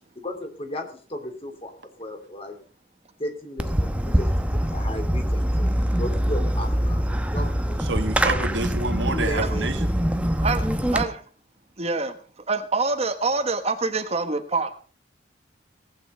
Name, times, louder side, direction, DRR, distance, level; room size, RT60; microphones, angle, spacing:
voice 1, 0.1-1.7 2.0-2.6 3.2-8.0 9.1-9.7, left 1 dB, 30° left, 5 dB, 2.8 m, -35 dB
Fireworks, 3.6-11.0, equal, 5° right, 1.0 m, -24 dB
voice 2, 7.9-9.9, right 3 dB, 85° right, 5 dB, 2.1 m, -28 dB
voice 3, 10.4-11.2 11.8-12.1 12.5-14.7, right 3 dB, 35° right, 8 dB, 1.2 m, -25 dB
18.0 x 8.9 x 5.5 m, 0.41 s
head